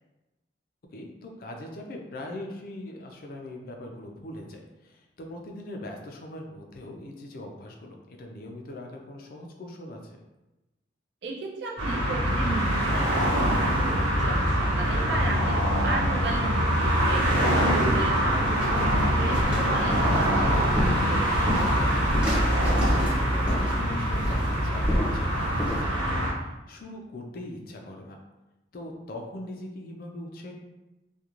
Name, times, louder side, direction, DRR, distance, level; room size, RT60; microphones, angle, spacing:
voice 1, 0.9-10.2 23.3-28.2 28.7-30.5, left 1 dB, 50° left, 2 dB, 0.4 m, -41 dB
voice 2, 11.2-17.2 17.5-21.8, right 2 dB, 60° right, -1 dB, 0.4 m, -35 dB
City Highway Busy, 11.8-26.3, equal, 90° right, 1.1 m, -24 dB
sound 1, 18.3-25.8, equal, 5° right, 0.6 m, -31 dB
2.4 x 2.2 x 2.9 m, 1.0 s
head